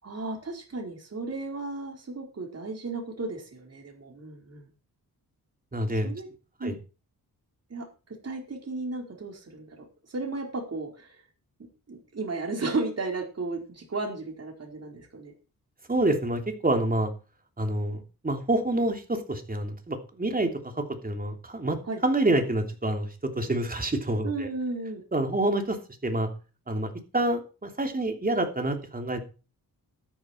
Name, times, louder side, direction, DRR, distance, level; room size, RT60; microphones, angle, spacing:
voice 1, 0.0-4.7 6.0-6.3 6.6-6.8 7.7-7.9 8.2-9.8 10.1-11.2 11.9-15.3 21.9-22.0 24.2-25.0, right 3 dB, 45° right, 2 dB, 4.5 m, -34 dB
voice 2, 5.7-6.1 6.6-6.8 15.9-17.1 17.6-24.5 25.1-26.3 26.7-29.2, right 1 dB, 25° right, 5 dB, 3.0 m, -27 dB
13.0 x 10.0 x 4.5 m, 0.33 s
cardioid pair, 90°, 36 cm